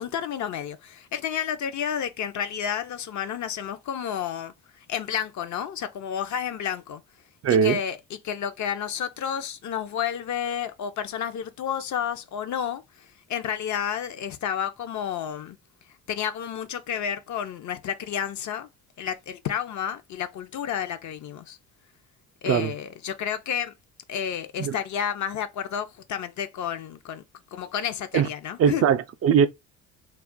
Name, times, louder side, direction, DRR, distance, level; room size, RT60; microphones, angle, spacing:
voice 1, 0.0-4.5 4.9-7.0 7.5-8.0 8.2-12.8 13.3-15.6 16.1-18.7 19.0-21.6 22.4-23.7 24.1-27.2 27.5-28.8, left 8 dB, 50° left, 0.6 m, -31 dB
voice 2, 7.4-7.8 22.5-22.7 24.6-24.8 28.1-28.3 28.6-29.5, right 7 dB, 40° right, 0.4 m, -20 dB
2.4 x 2.0 x 3.7 m
hypercardioid pair, 55°, 37 cm